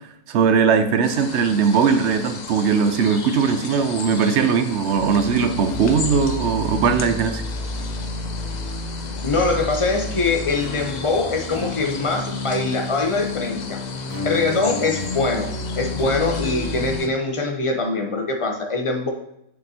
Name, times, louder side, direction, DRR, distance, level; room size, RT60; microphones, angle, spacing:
voice 1, 0.3-7.4, right 6 dB, 65° right, 9 dB, 0.7 m, -19 dB
sound 1, 1.0-17.1, left 5 dB, 85° left, 0.3 m, -36 dB
sound 2, 4.9-17.0, left 2 dB, 5° left, 1.9 m, -30 dB
voice 2, 9.2-19.1, left 3 dB, 30° left, 2 dB, 0.7 m, -23 dB
6.7 x 6.6 x 2.9 m, 0.79 s
omnidirectional pair, 1.6 m